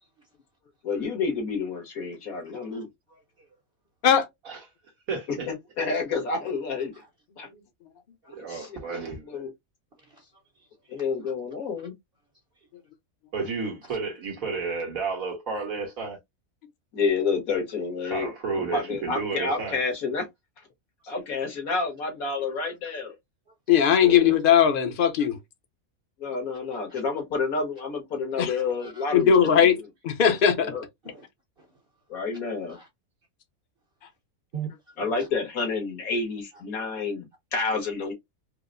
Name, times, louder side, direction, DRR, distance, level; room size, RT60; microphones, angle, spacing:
voice 1, 0.8-2.9 5.3-6.9 7.4-7.5 8.5-9.5 10.9-12.0 16.9-18.3 18.5-20.3 21.1-23.1 26.2-29.3 30.6-30.8 32.1-32.8 35.0-38.1, left 4 dB, 80° left, 1.8 m, -29 dB
voice 2, 2.5-2.8 3.1-3.5 8.2-8.4 10.0-10.3 10.6-11.3 12.6-12.7 13.9-14.0 25.2-25.3 26.9-27.0 28.8-29.0 31.0-31.3 31.6-31.7 32.7-32.9 34.5-34.9 35.2-35.3, right 8 dB, 50° right, 0.9 m, -43 dB
voice 3, 5.1-5.5 8.3-9.4 13.3-16.2 18.0-19.8 24.0-24.4, right 4 dB, 75° right, 1.8 m, -32 dB
voice 4, 23.7-25.4 28.4-28.5 29.1-30.7, left 8 dB, 50° left, 0.7 m, -19 dB
4.7 x 2.0 x 2.5 m
omnidirectional pair, 1.5 m